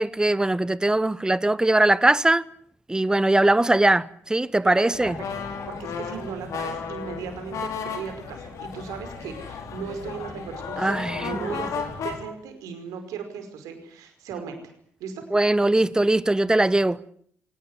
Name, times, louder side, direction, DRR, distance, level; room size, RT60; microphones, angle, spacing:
voice 1, 0.0-2.4 2.9-5.2 10.8-11.6 15.3-17.0, right 2 dB, 10° right, 1.1 m, -21 dB
voice 2, 4.6-5.1 5.5-14.6 15.0-15.2, right 6 dB, 60° right, 5.1 m, -37 dB
sound 1, 4.9-12.2, left 6 dB, 55° left, 4.6 m, -34 dB
24.0 x 18.5 x 9.8 m
figure-of-eight pair, 40°, 7 cm